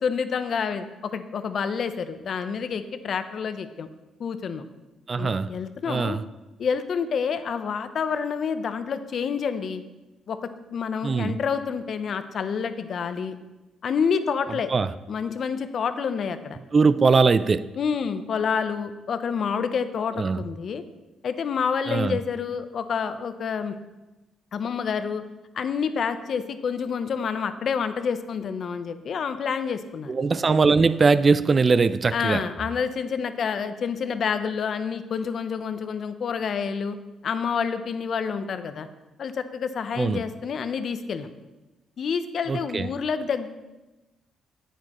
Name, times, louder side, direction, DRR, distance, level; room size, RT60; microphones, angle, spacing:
voice 1, 0.0-3.9 4.2-4.6 5.2-6.2 6.6-9.8 10.3-13.4 13.8-14.7 15.1-16.6 17.8-20.8 21.2-23.7 24.5-25.2 25.5-30.1 32.1-37.0 37.2-38.9 39.2-41.3 42.0-43.5, left 6 dB, 60° left, 0.7 m, -28 dB
voice 2, 5.1-5.6 5.9-6.2 11.0-11.4 14.7-14.9 16.7-17.7 20.1-20.4 21.9-22.2 30.1-32.5 40.0-40.2 42.5-42.9, right 4 dB, 40° right, 0.4 m, -21 dB
9.9 x 8.4 x 3.0 m
supercardioid pair, 70°, 0 cm